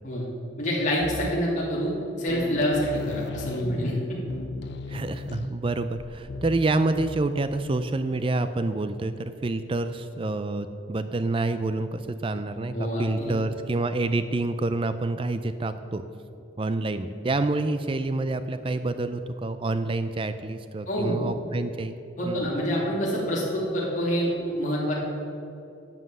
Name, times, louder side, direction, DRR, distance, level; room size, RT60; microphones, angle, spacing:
voice 1, 0.6-3.9 12.7-13.3 20.9-21.2 22.2-24.9, equal, 40° left, -6 dB, 2.7 m, -27 dB
sound 1, 1.0-1.6 2.0-2.1 2.3-7.6, left 3 dB, 60° left, 0.5 m, -37 dB
voice 2, 4.9-16.0 16.6-22.0 22.3-22.5, right 2 dB, 25° right, 11 dB, 0.4 m, -28 dB
11.5 x 7.5 x 7.7 m, 2.7 s
head